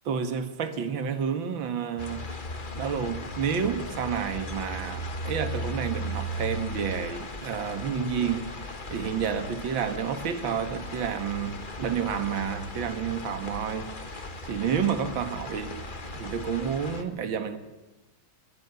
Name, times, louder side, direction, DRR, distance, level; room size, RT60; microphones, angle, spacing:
voice 1, 0.1-2.4 2.8-8.5 8.9-15.8 16.1-17.6, right 7 dB, 65° right, 10 dB, 2.3 m, -30 dB
sound 1, 2.0-17.0, left 1 dB, 25° left, 1.4 m, -37 dB
22.0 x 19.0 x 6.9 m, 1.1 s
omnidirectional pair, 2.3 m